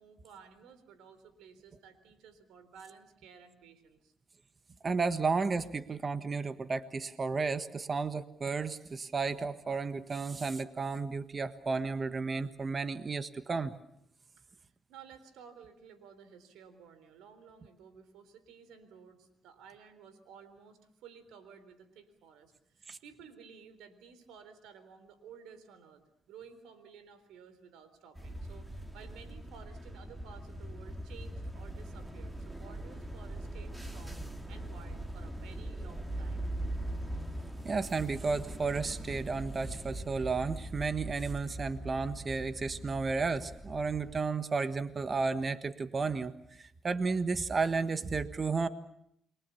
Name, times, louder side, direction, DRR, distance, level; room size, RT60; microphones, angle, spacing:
voice 1, 0.0-4.1 14.4-14.5 14.9-34.2 34.5-36.5, right 6 dB, 90° right, 12 dB, 3.7 m, -54 dB
voice 2, 4.8-13.7 22.9-23.0 37.6-48.7, right 4 dB, 35° right, 11 dB, 1.5 m, -33 dB
sound 1, 28.2-44.2, right 1 dB, 5° right, 2.8 m, -41 dB
29.5 x 23.0 x 7.1 m, 0.74 s
cardioid pair, 90°, 0 cm